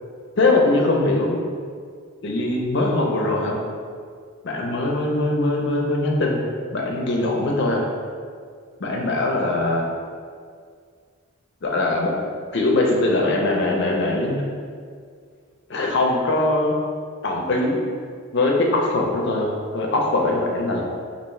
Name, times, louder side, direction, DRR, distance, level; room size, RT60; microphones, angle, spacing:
voice 1, 0.4-1.4 2.2-3.6 4.4-6.4 6.7-7.8 8.8-9.9 11.6-12.1 12.5-14.4 15.7-16.8 17.2-17.8 18.3-20.8, left 2 dB, 55° left, -1 dB, 0.5 m, -21 dB
3.5 x 2.5 x 3.1 m, 2.1 s
head